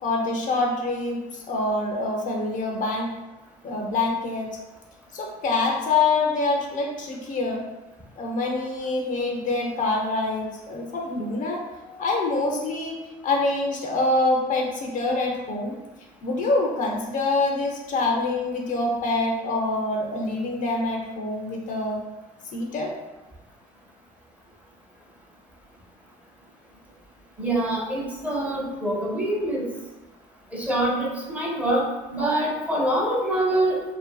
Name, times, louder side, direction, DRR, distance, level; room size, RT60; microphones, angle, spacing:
voice 1, 0.0-3.2 3.6-4.6 5.1-7.6 8.2-13.0 13.2-15.8 16.2-22.0 22.5-22.9, left 2 dB, 50° left, 0 dB, 0.5 m, -25 dB
voice 2, 27.4-29.7 30.5-33.8, right 1 dB, 10° right, -3 dB, 0.7 m, -25 dB
2.6 x 2.5 x 2.3 m, 1.1 s
cardioid pair, 110°, 17 cm